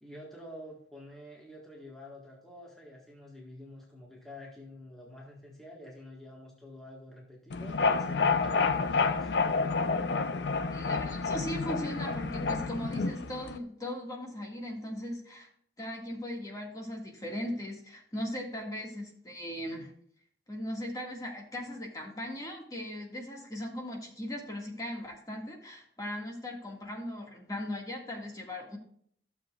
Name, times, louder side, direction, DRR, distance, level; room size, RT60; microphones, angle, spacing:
voice 1, 0.0-9.3, left 1 dB, ahead, -4 dB, 1.6 m, -48 dB
sound 1, 7.5-13.6, left 4 dB, 80° left, 0.6 m, -29 dB
voice 2, 10.7-15.5 15.8-19.9 20.5-28.8, left 1 dB, 20° left, 0 dB, 1.9 m, -38 dB
13.0 x 7.1 x 2.4 m, 0.63 s
head